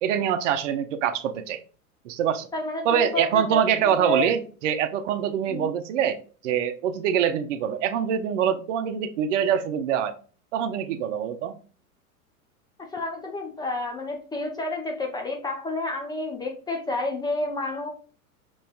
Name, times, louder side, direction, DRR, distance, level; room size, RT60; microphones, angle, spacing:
voice 1, 0.0-1.6 2.0-2.5 2.8-6.2 6.4-10.1 10.5-11.6, right 9 dB, 55° right, 9 dB, 0.7 m, -24 dB
voice 2, 2.5-4.3 5.5-5.7 12.8-17.9, left 2 dB, 10° left, 2 dB, 0.5 m, -30 dB
5.3 x 3.1 x 2.3 m, 0.40 s
hypercardioid pair, 100°, 44 cm